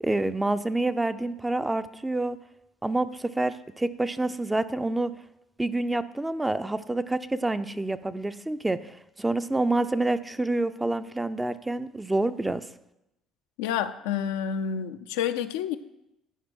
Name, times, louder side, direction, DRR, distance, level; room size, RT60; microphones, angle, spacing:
voice 1, 0.0-2.4 2.8-5.1 5.6-12.6, right 2 dB, 15° right, 0.5 m, -27 dB
voice 2, 13.6-15.8, left 8 dB, 80° left, 0.5 m, -29 dB
11.0 x 5.0 x 6.2 m
hypercardioid pair, 60°, 0 cm